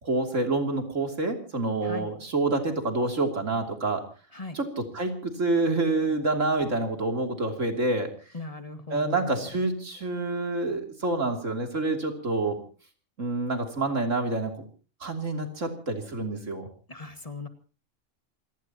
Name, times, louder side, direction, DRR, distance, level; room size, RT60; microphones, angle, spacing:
voice 1, 0.0-4.0 4.5-8.1 8.9-12.6 13.2-14.5 15.0-16.7, right 2 dB, 85° right, 4 dB, 3.4 m, -27 dB
voice 2, 8.3-9.4 16.9-17.5, left 3 dB, 30° left, 7 dB, 2.1 m, -39 dB
27.5 x 18.0 x 2.9 m, 0.36 s
omnidirectional pair, 1.3 m